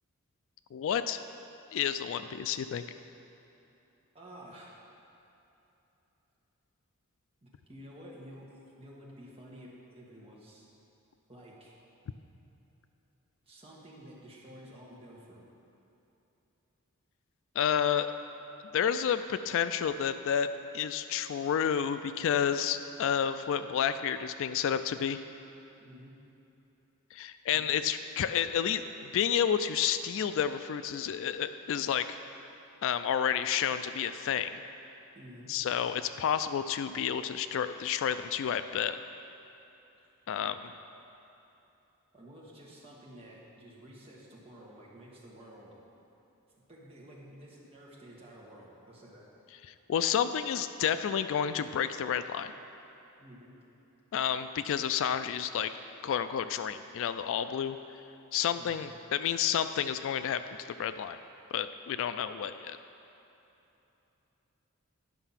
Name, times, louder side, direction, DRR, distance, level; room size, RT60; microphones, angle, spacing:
voice 1, 0.7-1.2 1.7-2.8 17.6-18.1 18.7-20.5 20.7-25.2 27.1-32.2 32.8-34.6 35.5-39.0 40.3-40.5 49.9-52.5 54.1-55.7 56.0-57.8 58.3-60.4 60.8-61.2 61.5-62.8, left 8 dB, 60° left, 11 dB, 0.3 m, -30 dB
voice 2, 4.1-4.8 7.4-10.7 11.3-11.8 13.4-15.4 25.8-26.2 27.5-27.6 35.1-35.5 40.0-40.1 40.4-40.5 42.1-45.8 46.7-49.3 52.4-52.5 53.2-53.6 58.5-58.8, equal, 25° right, -4 dB, 1.6 m, -51 dB
11.0 x 5.7 x 5.7 m, 3.0 s
head